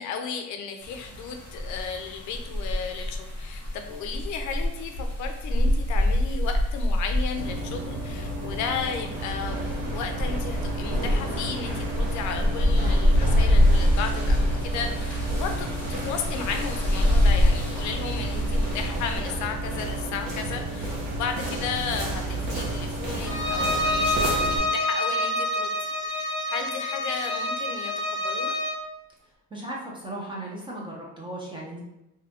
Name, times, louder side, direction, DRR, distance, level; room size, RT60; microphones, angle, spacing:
voice 1, 0.0-28.5, left 6 dB, 60° left, 6 dB, 0.4 m, -34 dB
sound 1, 0.8-19.2, left 1 dB, 5° left, 0.8 m, -25 dB
sound 2, 7.4-24.6, right 1 dB, 80° right, 1.0 m, -31 dB
Bowed string instrument, 23.2-28.8, left 1 dB, 35° right, 0.9 m, -27 dB
voice 2, 29.5-31.8, right 1 dB, 15° right, -3 dB, 0.3 m, -36 dB
2.7 x 2.5 x 3.3 m, 0.91 s
cardioid pair, 165°, 34 cm